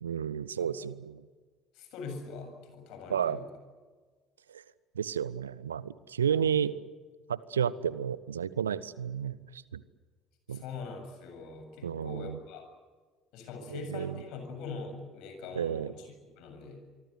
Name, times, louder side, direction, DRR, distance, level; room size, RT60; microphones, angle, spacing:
voice 1, 0.0-1.2 3.1-3.4 4.5-4.6 4.9-6.7 7.3-9.8 10.5-10.6 11.8-12.4 13.7-14.2 15.5-15.9, right 8 dB, 75° right, 20 dB, 0.8 m, -32 dB
voice 2, 1.7-3.5 6.3-6.5 10.5-12.6 13.3-16.1 16.4-16.8, left 4 dB, 55° left, 6 dB, 7.4 m, -43 dB
25.5 x 24.0 x 8.0 m, 1.5 s
figure-of-eight pair, 60°, 0 cm